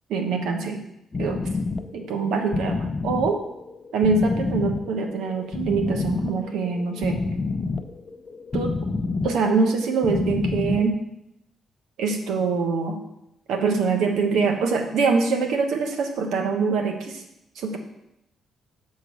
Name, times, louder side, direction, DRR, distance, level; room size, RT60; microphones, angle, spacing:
voice 1, 0.1-0.8 1.2-1.4 1.9-3.4 3.9-7.2 8.5-8.7 9.2-11.0 12.0-13.0 13.5-17.2 17.6-17.8, right 4 dB, 80° right, 4 dB, 1.1 m, -24 dB
sound 1, 1.1-10.9, left 3 dB, 30° left, 0.5 m, -28 dB
7.5 x 3.9 x 6.2 m, 0.84 s
cardioid pair, 90°, 0 cm